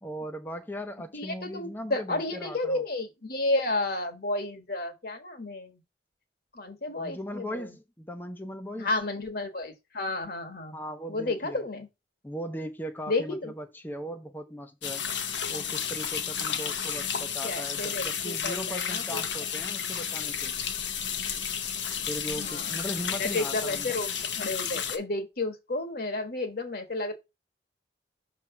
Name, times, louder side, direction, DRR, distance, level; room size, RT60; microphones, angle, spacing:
voice 1, 0.0-2.8 7.0-8.9 10.7-11.6 12.2-15.1 15.5-20.6 22.1-24.0, equal, 10° left, 0.7 m, -38 dB
voice 2, 1.1-5.8 6.5-7.7 8.8-10.7 11.1-11.9 13.1-13.5 16.6-16.7 17.4-19.2 22.3-22.8 23.1-24.1 24.4-27.1, left 2 dB, 60° left, 1.5 m, -32 dB
sound 1, 14.8-25.0, left 8 dB, 80° left, 1.0 m, -32 dB
6.4 x 3.2 x 5.8 m
head